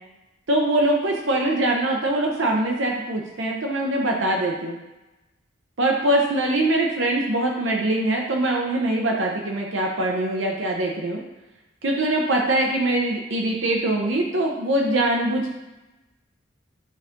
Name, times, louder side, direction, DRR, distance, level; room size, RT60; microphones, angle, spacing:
voice 1, 0.5-4.8 5.8-11.2 11.8-15.5, right 1 dB, 70° right, 0 dB, 0.8 m, -23 dB
11.0 x 4.4 x 2.6 m, 1.0 s
head